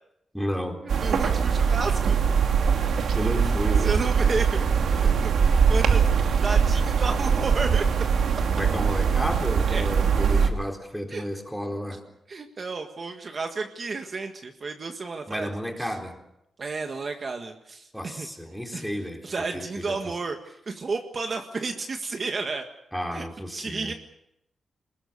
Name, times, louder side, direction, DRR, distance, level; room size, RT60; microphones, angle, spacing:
voice 1, 0.3-0.8 3.1-4.0 8.6-12.0 15.3-16.2 17.9-20.1 22.9-23.9, equal, ahead, 2 dB, 3.7 m, -32 dB
sound 1, 0.9-10.5, right 6 dB, 75° right, 2.6 m, -22 dB
voice 2, 1.0-2.1 3.1-3.2 3.8-4.6 4.9-5.1 5.4-7.8 9.7-9.9 11.1-11.2 12.3-15.5 15.8-15.9 16.6-18.3 18.7-18.9 19.2-22.7 23.1-23.2 23.5-23.9, right 4 dB, 40° right, 5 dB, 1.7 m, -32 dB
25.0 x 20.5 x 6.9 m, 0.81 s
wide cardioid pair, 140°, 0 cm